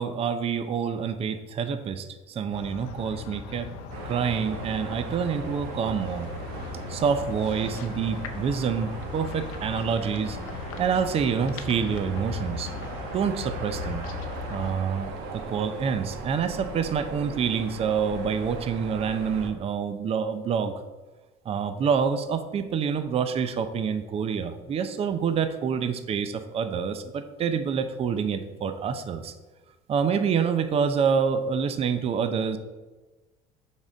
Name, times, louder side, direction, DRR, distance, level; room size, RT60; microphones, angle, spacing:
voice 1, 0.0-3.7 4.0-6.3 6.9-10.4 10.8-12.7 13.1-14.0 14.5-20.7 21.5-29.3 29.9-32.6, right 6 dB, 35° right, 9 dB, 0.5 m, -27 dB
sound 1, 2.5-14.7, left 5 dB, 85° left, 0.7 m, -38 dB
sound 2, 3.9-19.5, right 4 dB, 70° right, 1.1 m, -39 dB
6.1 x 3.7 x 5.1 m, 1.2 s
supercardioid pair, 95°, 17 cm